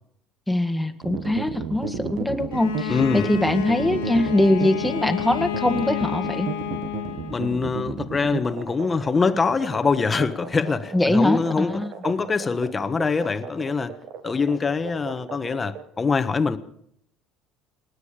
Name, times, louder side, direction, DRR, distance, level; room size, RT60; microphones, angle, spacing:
voice 1, 0.5-6.5 10.9-11.9, left 1 dB, 5° left, 5 dB, 1.9 m, -22 dB
sound 1, 1.0-15.8, right 6 dB, 60° right, 1.9 m, -33 dB
Bowed string instrument, 2.5-7.7, left 9 dB, 80° left, 1.8 m, -30 dB
voice 2, 2.9-3.3 7.3-13.9 14.2-16.6, left 4 dB, 25° left, 11 dB, 1.3 m, -24 dB
28.0 x 9.8 x 5.2 m, 0.68 s
hypercardioid pair, 65°, 0 cm